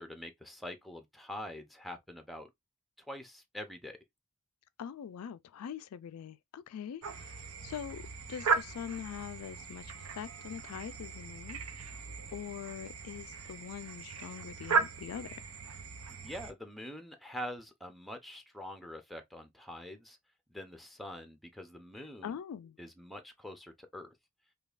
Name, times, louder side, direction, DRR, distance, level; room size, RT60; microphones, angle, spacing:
voice 1, 0.0-2.5 3.0-4.0 16.1-20.2 20.5-22.3 22.8-24.1, left 1 dB, ahead, 0.6 m, -45 dB
voice 2, 4.8-8.0 8.3-15.5 22.2-22.8, left 8 dB, 80° left, 0.3 m, -43 dB
sound 1, 7.0-16.5, right 5 dB, 85° right, 0.6 m, -37 dB
5.2 x 2.3 x 2.4 m
head